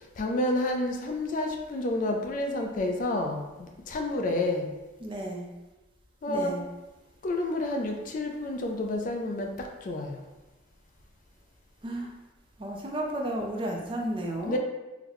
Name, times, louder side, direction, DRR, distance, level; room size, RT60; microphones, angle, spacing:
voice 1, 0.2-4.7 6.2-6.6 7.2-10.2 14.5-14.6, left 1 dB, 45° left, 2 dB, 0.4 m, -29 dB
voice 2, 5.0-5.5 6.3-6.6 11.8-12.1 12.6-14.6, right 1 dB, 30° right, 0 dB, 0.4 m, -33 dB
3.8 x 2.1 x 2.9 m, 1.1 s
head